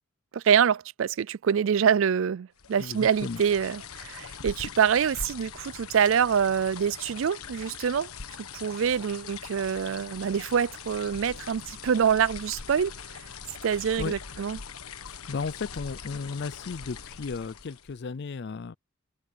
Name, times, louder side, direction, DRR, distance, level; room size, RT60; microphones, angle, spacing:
voice 1, 0.3-8.1 8.5-12.9 13.6-14.6, right 7 dB, 60° right, 0.4 m, -25 dB
sound 1, 2.6-18.0, left 5 dB, 80° left, 1.4 m, -42 dB
voice 2, 2.8-3.4 14.0-14.1 15.1-18.7, left 4 dB, 50° left, 0.4 m, -34 dB
open air
head